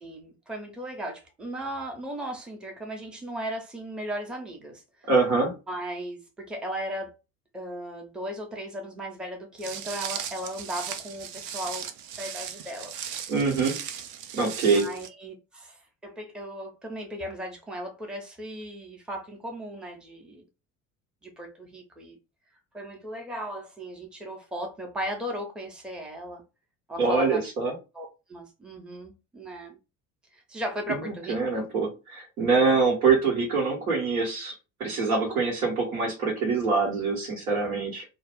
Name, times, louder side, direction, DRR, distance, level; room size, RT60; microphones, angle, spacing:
voice 1, 0.0-5.1 5.7-7.1 7.5-11.9 12.2-13.3 14.6-20.4 21.2-22.2 22.7-26.4 26.9-27.4 27.9-29.8 30.3-31.7 35.2-35.3, equal, ahead, 0.6 m, -36 dB
voice 2, 5.1-5.5 13.3-13.7 14.3-14.9 27.0-27.7 30.9-31.0 31.3-34.5 34.8-38.0, right 4 dB, 80° right, 1.2 m, -24 dB
Walk footsteps, 9.6-15.1, right 9 dB, 45° right, 0.5 m, -37 dB
2.3 x 2.2 x 3.4 m
figure-of-eight pair, 55°, 45 cm